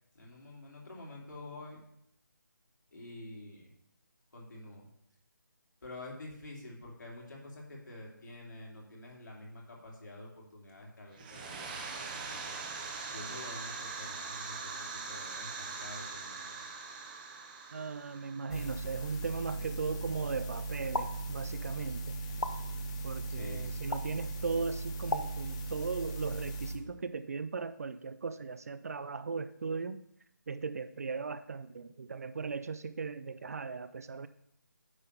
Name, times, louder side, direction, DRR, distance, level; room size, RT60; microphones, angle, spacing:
voice 1, 0.1-1.8 2.9-3.7 4.3-4.9 5.8-12.5 13.1-16.8 23.3-24.0, left 1 dB, 65° left, -2 dB, 2.9 m, -48 dB
sound 1, 11.1-19.7, right 4 dB, 25° right, 0.9 m, -42 dB
voice 2, 17.7-22.1 23.0-30.0 30.5-34.3, right 4 dB, 50° right, 12 dB, 0.4 m, -38 dB
sound 2, 18.5-26.7, right 2 dB, 20° left, 0.6 m, -38 dB
sound 3, 20.9-21.1 22.4-22.5 23.9-24.0 25.1-25.2, left 2 dB, 90° left, 0.8 m, -32 dB
9.7 x 3.9 x 6.5 m, 0.74 s
figure-of-eight pair, 155°, 11 cm